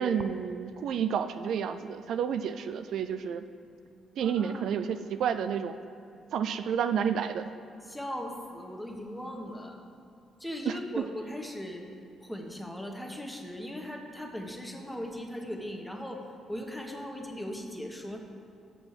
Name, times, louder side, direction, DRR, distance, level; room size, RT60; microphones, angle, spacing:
voice 1, 0.0-3.4 4.2-5.8 6.3-7.5 10.7-11.0, right 7 dB, 75° right, 10 dB, 0.3 m, -30 dB
voice 2, 4.2-4.7 7.8-9.9 10.4-11.9 12.2-18.2, equal, 5° left, 2 dB, 1.1 m, -39 dB
6.8 x 6.0 x 7.2 m, 2.6 s
cardioid pair, 90°, 0 cm